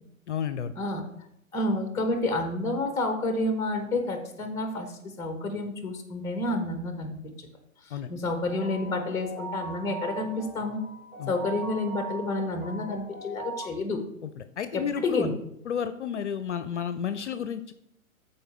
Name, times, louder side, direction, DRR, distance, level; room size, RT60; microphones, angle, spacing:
voice 1, 0.3-0.7 7.9-8.1 11.2-11.3 14.2-15.3 15.7-17.7, left 8 dB, 55° left, 11 dB, 0.6 m, -31 dB
voice 2, 1.5-7.5 7.9-10.8 11.3-14.0 14.7-15.3, left 2 dB, 5° left, 6 dB, 0.8 m, -29 dB
sound 1, 8.5-13.7, right 3 dB, 80° right, 2.8 m, -40 dB
12.5 x 4.3 x 3.3 m, 0.76 s
figure-of-eight pair, 120°, 42 cm